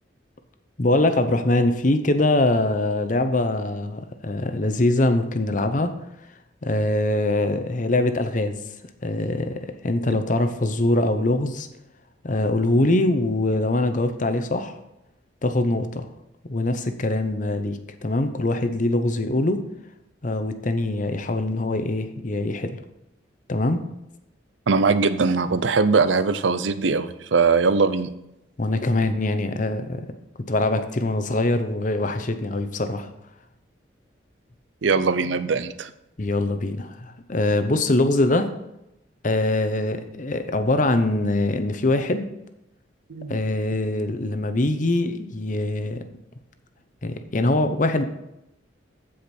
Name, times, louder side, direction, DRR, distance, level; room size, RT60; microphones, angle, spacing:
voice 1, 0.8-5.9 6.6-8.6 9.0-11.7 12.2-14.7 15.4-16.1 16.5-19.7 20.2-22.8 23.5-23.8 28.6-30.0 30.5-33.1 36.2-38.5 39.2-42.3 43.3-46.0 47.0-48.0, left 2 dB, 40° left, 9 dB, 0.8 m, -23 dB
voice 2, 24.7-28.1 34.8-35.9 43.1-43.4, right 4 dB, 75° right, 13 dB, 0.6 m, -21 dB
15.0 x 5.1 x 4.4 m, 0.87 s
head